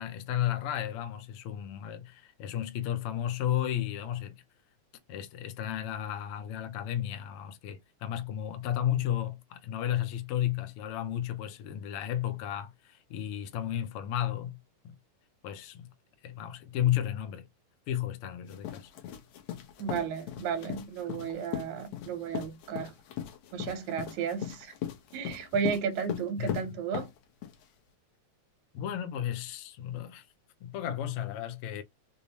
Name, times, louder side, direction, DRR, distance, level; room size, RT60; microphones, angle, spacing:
voice 1, 0.0-4.4 5.1-14.6 14.8-15.0 15.4-15.9 16.2-17.5 17.9-18.9 26.4-26.6 28.7-30.3 30.6-31.8, left 11 dB, 90° left, 1.2 m, -33 dB
sound 1, 18.5-27.6, left 11 dB, 70° left, 2.0 m, -38 dB
voice 2, 19.8-22.9 23.5-24.7 25.1-27.1, right 7 dB, 80° right, 2.0 m, -33 dB
5.1 x 2.0 x 2.7 m
omnidirectional pair, 3.4 m